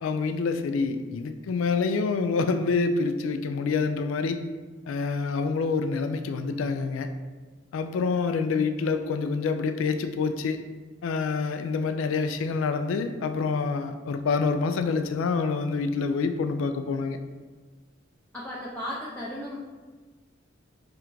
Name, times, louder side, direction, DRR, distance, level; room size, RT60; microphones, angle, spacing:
voice 1, 0.0-4.4 4.9-7.1 7.7-10.6 11.0-17.2, left 4 dB, 85° left, 8 dB, 0.3 m, -27 dB
voice 2, 18.3-19.6, left 1 dB, 5° left, -7 dB, 0.4 m, -35 dB
3.4 x 2.5 x 4.5 m, 1.3 s
head